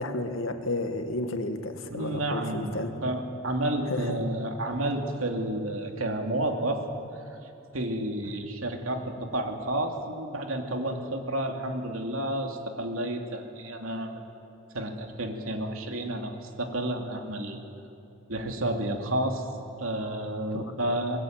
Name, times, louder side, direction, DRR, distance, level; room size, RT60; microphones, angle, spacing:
voice 1, 0.0-2.9 3.9-4.2 20.5-21.0, left 2 dB, 75° left, 7 dB, 1.9 m, -32 dB
voice 2, 1.9-6.8 7.7-14.2 14.7-17.6 18.3-19.4 19.8-21.2, right 1 dB, 90° right, 3 dB, 2.7 m, -31 dB
23.5 x 21.0 x 9.0 m, 2.7 s
head